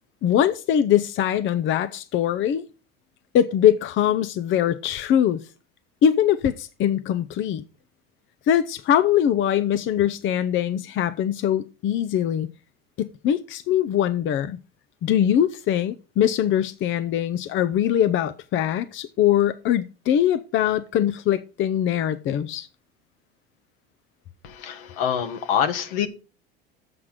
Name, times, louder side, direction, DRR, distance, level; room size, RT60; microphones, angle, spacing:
voice 1, 0.2-2.6 3.3-5.4 6.0-7.6 8.5-12.5 13.0-14.6 15.0-22.7, left 10 dB, 45° left, 0.7 m, -22 dB
voice 2, 24.4-26.1, left 8 dB, 70° left, 1.5 m, -25 dB
7.8 x 5.8 x 6.5 m
hypercardioid pair, 75°, 29 cm